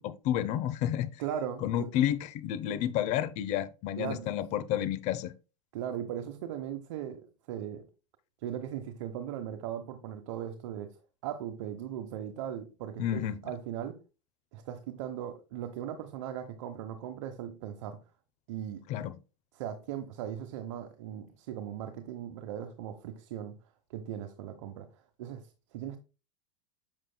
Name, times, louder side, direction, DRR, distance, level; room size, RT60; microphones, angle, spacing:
voice 1, 0.0-1.1 1.6-5.3 13.0-13.4 18.9-19.1, left 11 dB, 45° left, 0.9 m, -30 dB
voice 2, 1.2-1.9 4.0-4.3 5.7-7.8 8.4-10.9 11.2-13.9 14.5-18.0 18.5-18.9 19.5-23.5 23.9-24.9 25.2-25.5 25.7-26.0, right 10 dB, 70° right, 1.1 m, -38 dB
7.6 x 7.5 x 2.3 m
supercardioid pair, 130°, 16 cm